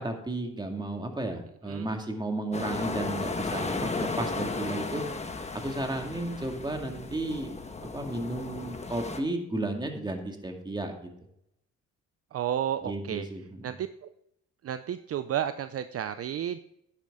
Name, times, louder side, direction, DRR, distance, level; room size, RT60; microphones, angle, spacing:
voice 1, 0.0-5.0 5.5-7.5 7.9-11.1 12.8-13.7, right 2 dB, 15° right, 3 dB, 2.2 m, -33 dB
sound 1, 2.5-9.2, left 3 dB, 20° left, 1.3 m, -35 dB
voice 2, 12.3-13.3 13.6-13.9 14.6-16.6, right 10 dB, 50° right, 11 dB, 0.6 m, -31 dB
10.0 x 9.9 x 3.7 m, 0.76 s
cardioid pair, 90°, 30 cm